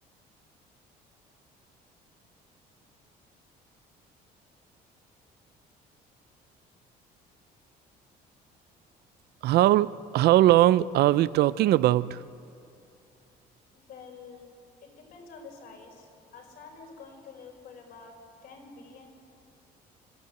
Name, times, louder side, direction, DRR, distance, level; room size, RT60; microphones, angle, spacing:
voice 1, 9.4-12.2, right 14 dB, 70° right, 18 dB, 0.5 m, -21 dB
voice 2, 13.7-14.5 14.8-18.2 18.4-19.1, left 4 dB, 65° left, 1 dB, 5.0 m, -48 dB
26.0 x 12.5 x 7.9 m, 2.5 s
cardioid pair, 110°, 17 cm